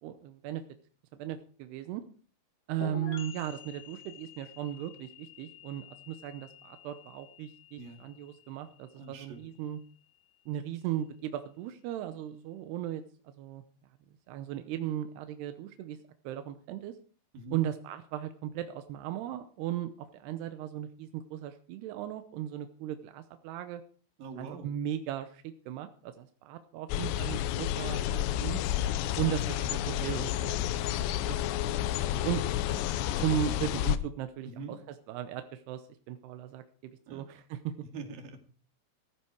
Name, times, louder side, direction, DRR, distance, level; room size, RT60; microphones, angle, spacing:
voice 1, 0.0-0.6 1.1-2.0 2.7-9.8 10.5-13.6 14.3-16.0 16.2-17.0 17.5-23.8 24.4-28.6 29.2-31.4 31.7-31.8 32.1-32.4 33.2-37.7, right 11 dB, 80° right, 9 dB, 2.4 m, -37 dB
sound 1, 2.8-10.4, left 8 dB, 50° left, 2.9 m, -49 dB
voice 2, 7.8-8.1 9.0-9.4 17.3-17.6 24.2-24.7 29.3-29.4 34.4-34.8 37.1-37.2 37.8-38.4, right 3 dB, 55° right, 5 dB, 3.7 m, -43 dB
sound 2, 26.9-34.0, left 12 dB, 80° left, 2.6 m, -30 dB
14.5 x 14.5 x 4.6 m, 0.41 s
omnidirectional pair, 5.7 m